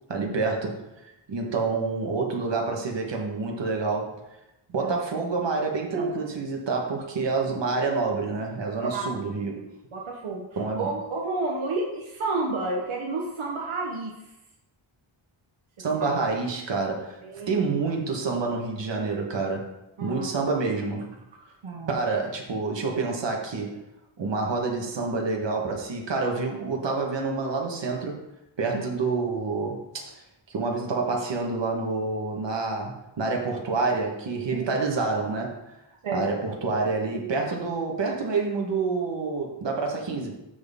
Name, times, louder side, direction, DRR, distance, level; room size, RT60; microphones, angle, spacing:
voice 1, 0.1-0.7 1.3-4.2 4.7-9.6 10.6-10.9 15.8-17.2 17.5-19.7 20.0-21.1 21.9-23.8 24.2-28.2 28.6-30.2 30.5-35.6 36.1-40.4, right 4 dB, 60° right, 0 dB, 1.7 m, -28 dB
voice 2, 9.9-14.1 16.0-16.1 17.2-17.6 20.0-20.3 21.6-21.9 28.7-28.8 34.5-34.7 36.0-36.3, right 3 dB, 85° right, -2 dB, 1.3 m, -30 dB
13.0 x 4.3 x 3.7 m, 0.91 s
wide cardioid pair, 130°, 48 cm